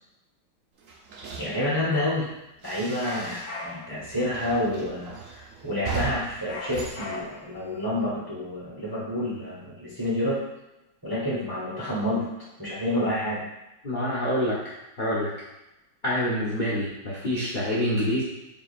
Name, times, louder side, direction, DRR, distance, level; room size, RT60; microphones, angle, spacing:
sound 1, 0.8-3.7 4.0-7.9, right 5 dB, 80° right, 0.7 m, -39 dB
voice 1, 1.4-2.3 2.6-10.4 11.0-12.2 12.6-13.4, left 1 dB, 15° right, -8 dB, 0.7 m, -28 dB
sound 2, 3.0-4.0 6.5-7.6, left 2 dB, 65° left, 1.5 m, -38 dB
voice 2, 13.8-15.3 16.0-18.2, equal, 45° left, -8 dB, 0.6 m, -26 dB
5.0 x 3.5 x 2.5 m, 0.93 s
omnidirectional pair, 2.2 m